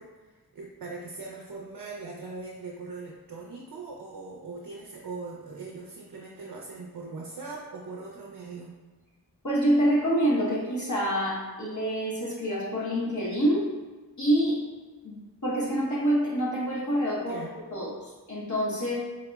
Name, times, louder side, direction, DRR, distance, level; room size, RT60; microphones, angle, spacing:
voice 1, 0.0-8.7 17.2-17.5, right 3 dB, 60° right, -2 dB, 0.6 m, -40 dB
voice 2, 9.4-13.7 14.2-14.7 15.0-17.4 17.7-17.9 18.3-19.0, equal, 50° left, -7 dB, 1.0 m, -26 dB
3.9 x 2.9 x 2.3 m, 1.2 s
wide cardioid pair, 50°, 39 cm